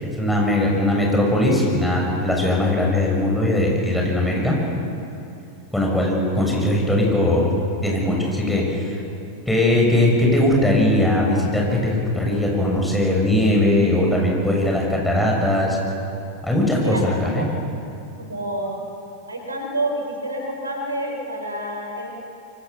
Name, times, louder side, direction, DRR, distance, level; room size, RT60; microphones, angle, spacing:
voice 1, 0.0-4.6 5.7-7.5 7.8-9.0 9.5-15.8 16.4-17.4, left 1 dB, 5° left, -2 dB, 7.1 m, -20 dB
voice 2, 16.8-17.5 18.2-18.8 19.3-22.1, right 1 dB, 80° right, 2 dB, 4.5 m, -28 dB
26.5 x 24.0 x 6.9 m, 2.7 s
figure-of-eight pair, 90°, 0 cm